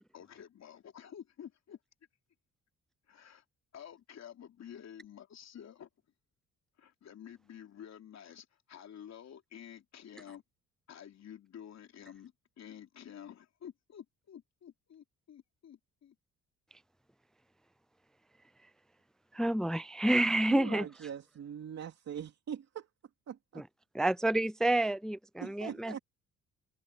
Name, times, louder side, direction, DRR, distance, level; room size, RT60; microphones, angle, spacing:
voice 1, 0.1-1.8 3.1-3.4 3.7-5.9 6.8-10.4 10.9-16.1, left 9 dB, 60° left, 3.3 m, -50 dB
voice 2, 19.3-20.8 23.9-26.0, right 1 dB, ahead, 0.4 m, -29 dB
voice 3, 20.5-22.9 23.3-23.6 25.4-26.0, right 8 dB, 60° right, 3.0 m, -42 dB
open air
cardioid pair, 90°, 30 cm